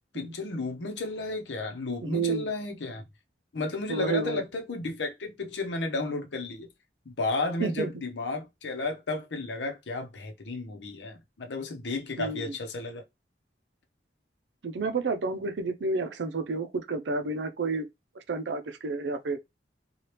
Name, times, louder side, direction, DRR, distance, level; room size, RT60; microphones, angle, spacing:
voice 1, 0.1-3.1 3.5-6.7 7.1-13.0, left 3 dB, 80° left, 0.8 m, -33 dB
voice 2, 2.0-2.5 3.9-4.4 7.6-8.0 12.2-12.5 14.6-17.9 18.3-19.4, right 3 dB, 80° right, 0.5 m, -30 dB
2.9 x 2.3 x 3.2 m
head